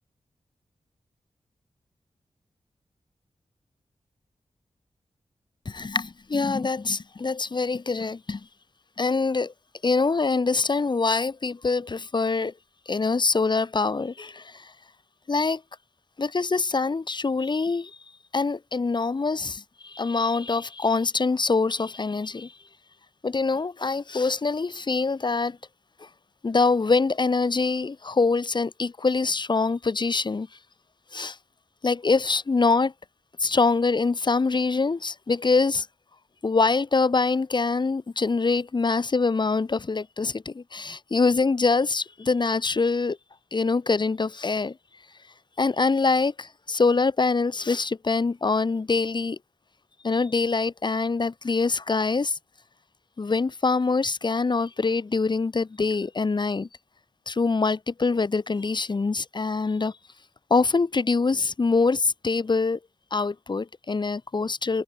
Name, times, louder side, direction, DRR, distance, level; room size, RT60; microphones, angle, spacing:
voice 1, 5.7-8.4 9.0-9.5 9.8-12.5 12.9-14.7 15.3-15.6 16.2-17.9 18.3-22.5 23.2-25.6 26.4-30.5 31.1-31.4 31.8-32.9 33.4-35.9 36.4-43.2 43.5-44.7 45.6-49.4 50.0-52.4 53.2-56.7 57.3-59.9 60.5-62.8 63.1-64.8, left 4 dB, 45° left, 3.7 m, -24 dB
wide cardioid pair, 95°, 11 cm